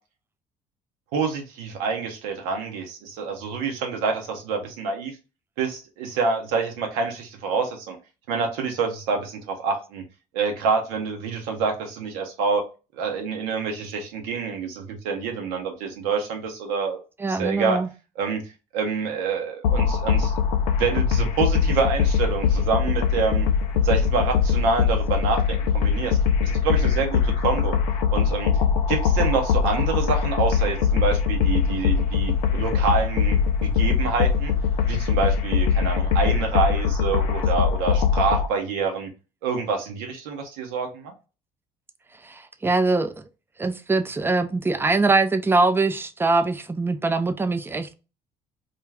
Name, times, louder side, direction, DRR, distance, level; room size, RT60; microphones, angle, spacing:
voice 1, 1.1-5.2 5.6-8.0 8.3-10.0 10.3-12.6 13.0-17.0 17.3-17.8 18.2-18.4 18.7-20.3 20.8-23.5 23.8-27.8 28.1-28.5 28.9-34.5 34.9-39.1 39.4-41.1, right 5 dB, 75° right, 0.7 m, -27 dB
voice 2, 17.2-17.9 42.2-43.2 43.6-47.9, right 3 dB, 10° right, 0.4 m, -23 dB
sound 1, 19.6-38.5, left 6 dB, 80° left, 0.4 m, -22 dB
2.4 x 2.3 x 3.3 m
hypercardioid pair, 55°, 19 cm